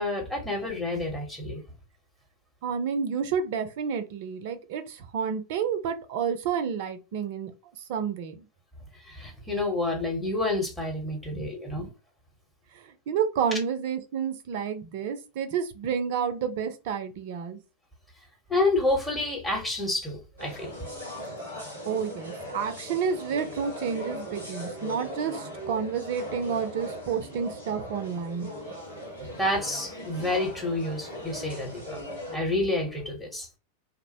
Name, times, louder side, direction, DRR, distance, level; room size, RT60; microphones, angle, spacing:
voice 1, 0.0-1.6 8.9-11.9 18.5-20.7 29.2-32.0 32.3-33.5, left 2 dB, 5° left, 0.9 m, -29 dB
voice 2, 2.6-7.5 7.9-8.5 11.3-11.9 12.7-17.6 21.9-28.5, right 7 dB, 50° right, 0.4 m, -30 dB
sound 1, 20.4-32.4, equal, 90° left, 1.1 m, -39 dB
2.5 x 2.0 x 2.6 m
figure-of-eight pair, 90°, 0 cm